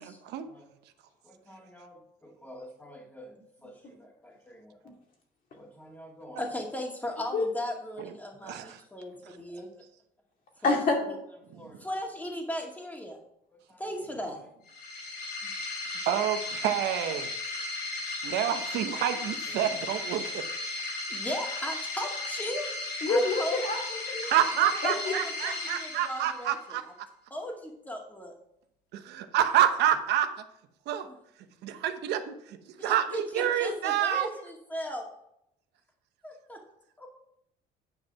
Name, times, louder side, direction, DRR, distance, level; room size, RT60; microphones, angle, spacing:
voice 1, 0.0-0.5 8.0-8.1 8.4-8.8 11.5-11.7 16.1-16.4 16.6-17.3 18.2-20.5 24.2-26.8 28.9-30.3 30.9-31.1 31.6-34.3, right 10 dB, 80° right, 9 dB, 0.9 m, -28 dB
voice 2, 1.2-4.9 5.6-9.7 10.6-10.8 11.5-13.2 13.5-14.5 15.4-15.5 19.5-19.6 21.1-22.7 23.1-23.6 24.6-26.6 26.9-27.0 27.3-28.3 31.1-31.2 32.8-35.1 36.2-36.6 37.0-37.1, equal, 10° left, 1 dB, 2.1 m, -38 dB
voice 3, 10.6-11.2 23.0-24.3 24.8-25.1, left 3 dB, 55° left, 1 dB, 2.4 m, -27 dB
sound 1, 14.7-26.6, left 2 dB, 70° left, 3.7 m, -35 dB
9.0 x 5.3 x 5.8 m, 0.77 s
cardioid pair, 110°, 17 cm